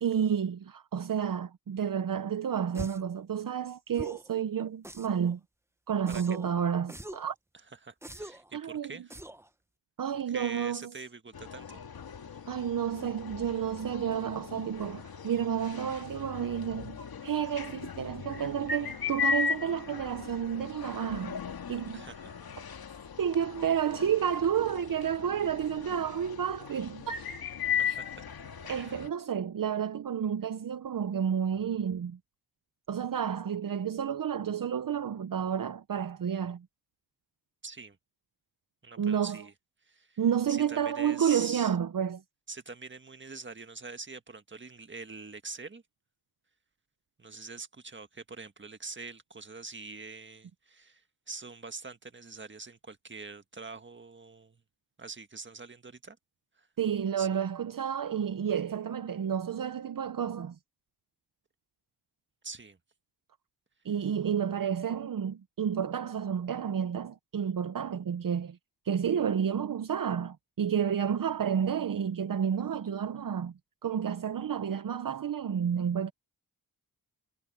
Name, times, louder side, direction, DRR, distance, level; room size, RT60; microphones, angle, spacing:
voice 1, 0.0-5.4 5.9-7.3 8.5-8.9 10.0-10.9 12.5-21.4 21.7-22.0 23.2-27.2 27.9-28.0 28.7-32.2 32.9-36.7 39.0-39.4 40.2-42.2 56.8-60.6 63.8-68.6 68.8-73.5 73.8-76.1, right 8 dB, 55° right, 0.9 m, -30 dB
sound 1, 2.7-3.1 3.9-4.3 4.8-5.3 6.1-6.5 6.9-7.3 8.0-8.5 9.1-9.5, right 1 dB, 5° right, 0.9 m, -43 dB
voice 2, 7.8-9.2 10.3-11.8 12.3-12.5 21.9-22.3 27.7-28.9 37.6-38.0 38.8-39.5 39.8-40.2 40.5-41.7 42.5-45.8 47.2-54.6 55.0-56.2 56.6-56.7 57.2-57.4 62.4-62.8, right 4 dB, 30° right, 1.7 m, -44 dB
sound 2, 11.3-29.1, left 6 dB, 70° left, 2.3 m, -37 dB
cardioid pair, 80°, 38 cm